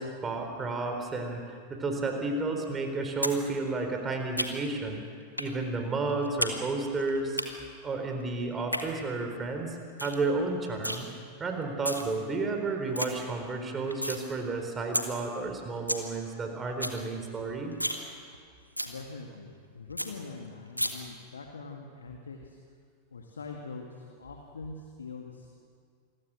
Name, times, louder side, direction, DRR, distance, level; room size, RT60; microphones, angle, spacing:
voice 1, 0.0-5.0 5.4-7.4 7.8-11.1 11.4-17.7, right 3 dB, 20° right, 4 dB, 4.0 m, -32 dB
sound 1, 3.2-3.4 3.7-4.8 5.4-5.5 5.9-6.6 6.8-7.4 8.5-8.8 9.3-9.4 9.7-9.8 10.0-10.2 10.5-11.0 11.6-12.0 12.5-12.6 12.7-13.1 13.5-14.2 14.6-14.7 14.9-15.1 15.4-15.5 15.7-16.0 16.4-16.5 16.7-17.0 17.3-17.4 17.7-18.0 18.3-18.4 18.8-18.9 19.3-19.4 19.6-19.7 20.0-20.1 20.8-20.9, equal, 90° left, 1.7 m, -31 dB
voice 2, 18.9-22.6 23.1-25.5, left 4 dB, 70° left, 3 dB, 2.0 m, -43 dB
28.0 x 21.5 x 6.3 m, 2.1 s
figure-of-eight pair, 90°, 0 cm